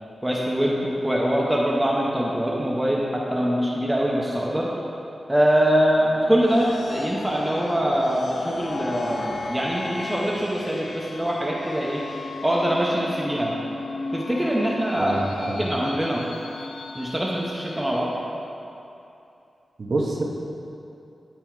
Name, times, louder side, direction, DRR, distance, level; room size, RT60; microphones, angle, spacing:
voice 1, 0.2-4.7 5.3-12.0 12.4-13.6 14.1-16.2 16.9-18.1, equal, 10° right, -4 dB, 0.6 m, -23 dB
sound 1, 5.8-18.3, left 3 dB, 80° left, 0.4 m, -36 dB
voice 2, 15.0-15.6 19.8-20.2, right 2 dB, 45° right, -1 dB, 0.8 m, -27 dB
9.1 x 4.6 x 4.5 m, 2.7 s
wide cardioid pair, 180°, 0 cm